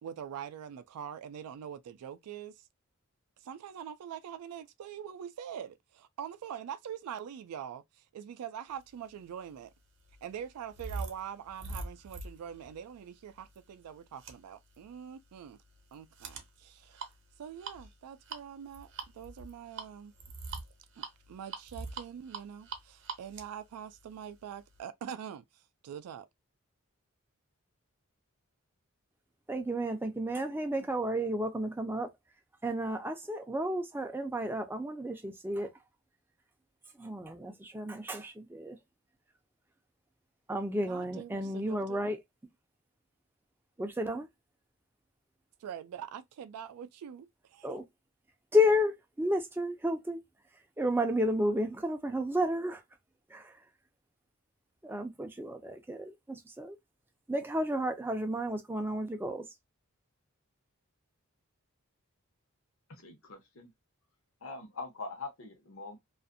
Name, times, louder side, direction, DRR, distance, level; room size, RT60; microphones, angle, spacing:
voice 1, 0.0-2.6 3.4-9.7 10.2-15.6 15.9-17.1 17.4-20.1 21.0-26.3 40.8-42.0 45.6-47.7, right 8 dB, 90° right, 0.3 m, -44 dB
sound 1, 9.1-24.8, right 4 dB, 55° right, 0.7 m, -45 dB
voice 2, 29.5-32.1 32.6-35.7 36.9-38.8 40.5-42.2 43.8-44.3 47.6-47.8 48.5-50.2 50.5-52.8 53.3-53.7 54.8-56.8 57.3-59.5, left 1 dB, 10° right, 0.4 m, -32 dB
voice 3, 63.0-63.7 64.4-66.0, left 3 dB, 65° left, 0.9 m, -43 dB
2.5 x 2.4 x 2.5 m
head